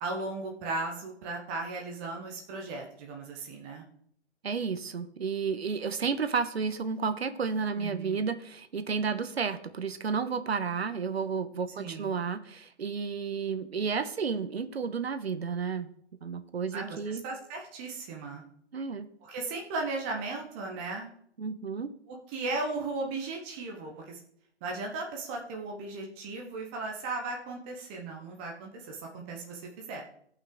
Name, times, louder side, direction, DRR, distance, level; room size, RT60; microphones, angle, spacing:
voice 1, 0.0-3.8 7.8-8.2 11.8-12.1 16.7-18.4 19.2-21.1 22.1-24.2 24.6-30.0, right 3 dB, 10° right, 0 dB, 0.7 m, -36 dB
voice 2, 4.4-15.9 16.2-17.2 18.7-19.1 21.4-21.9, right 5 dB, 60° right, 11 dB, 1.1 m, -32 dB
17.0 x 5.7 x 3.7 m, 0.66 s
figure-of-eight pair, 145°, 35 cm